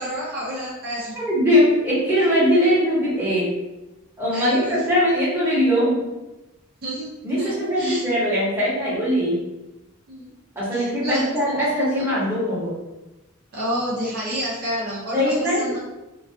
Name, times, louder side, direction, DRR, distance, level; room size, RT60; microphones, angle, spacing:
voice 1, 0.0-1.2 4.3-4.8 6.8-8.0 10.1-10.3 10.7-11.3 11.5-11.7 12.0-12.1 13.5-15.8, equal, 45° right, -7 dB, 0.5 m, -29 dB
voice 2, 1.1-3.5 4.2-6.0 7.2-9.4 10.6-12.7 15.1-15.7, equal, 10° right, -10 dB, 1.0 m, -21 dB
2.3 x 2.2 x 2.5 m, 1.0 s
head